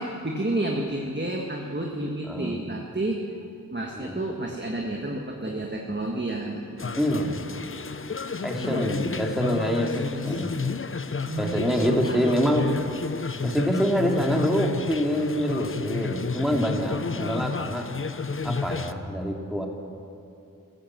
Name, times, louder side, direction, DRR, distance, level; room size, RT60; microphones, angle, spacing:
voice 1, 0.0-3.2 3.7-7.3 8.1-9.1 9.8-10.7 11.3-12.4, right 1 dB, 30° right, 0 dB, 1.6 m, -31 dB
sound 1, 6.8-18.9, left 5 dB, 35° left, 0.6 m, -31 dB
voice 2, 7.0-7.4 8.4-10.5 11.4-12.7 13.4-17.9 18.4-19.7, equal, ahead, 0 dB, 2.6 m, -26 dB
14.5 x 13.0 x 7.5 m, 2.6 s
wide cardioid pair, 45°, 35 cm